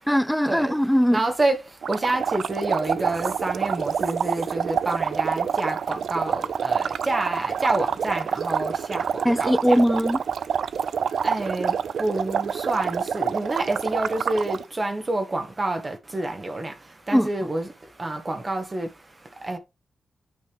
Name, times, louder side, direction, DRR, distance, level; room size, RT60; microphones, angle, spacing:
voice 1, 0.1-1.2 9.2-10.2 17.1-17.3, equal, ahead, 0.4 m, -20 dB
voice 2, 1.1-1.6 1.9-9.0 9.4-9.8 11.2-11.7 12.0-16.7 17.1-17.7 18.0-18.9 19.4-19.6, right 2 dB, 35° right, 1.4 m, -28 dB
sound 1, 1.8-14.6, right 7 dB, 75° right, 0.3 m, -27 dB
8.8 x 5.3 x 3.4 m
cardioid pair, 65°, 0 cm